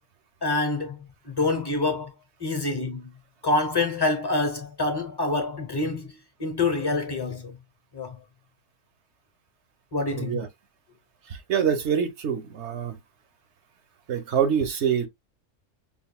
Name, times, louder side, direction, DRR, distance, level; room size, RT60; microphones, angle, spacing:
voice 1, 0.4-2.1 2.4-3.1 3.4-7.5 7.9-8.1 9.9-10.5, left 3 dB, 20° left, 0.9 m, -26 dB
voice 2, 10.1-10.5 11.5-13.0 14.1-15.1, right 8 dB, 65° right, 1.1 m, -25 dB
5.5 x 2.6 x 2.2 m
omnidirectional pair, 1.3 m